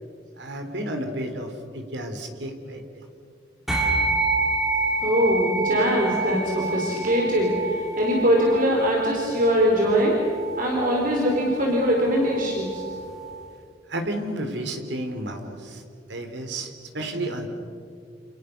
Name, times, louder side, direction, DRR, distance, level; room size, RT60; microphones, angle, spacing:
voice 1, 0.4-3.1 13.9-15.8 16.1-17.5, right 1 dB, 75° right, 6 dB, 3.6 m, -32 dB
sound 1, 3.7-13.4, right 3 dB, ahead, 5.8 m, -28 dB
voice 2, 5.0-10.1 10.6-12.8, equal, 50° right, -1 dB, 4.7 m, -22 dB
29.0 x 28.5 x 6.7 m, 2.3 s
head